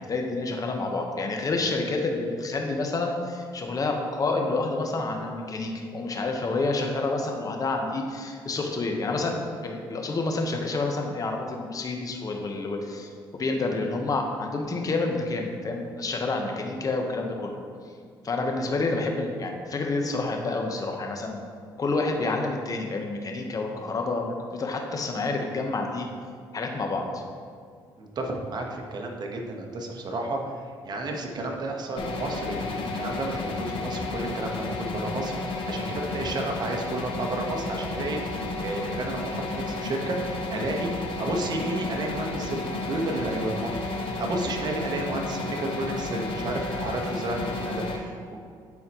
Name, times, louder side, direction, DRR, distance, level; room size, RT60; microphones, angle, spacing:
voice 1, 0.0-17.5 18.2-21.4 21.8-26.1 26.5-27.2, left 3 dB, 40° left, 2 dB, 1.0 m, -28 dB
voice 2, 28.0-30.5 30.8-48.5, right 2 dB, 50° right, 1 dB, 1.2 m, -32 dB
sound 1, 32.0-48.0, left 3 dB, 70° left, 0.8 m, -32 dB
10.5 x 4.2 x 3.0 m, 2.2 s
supercardioid pair, 75°, 9 cm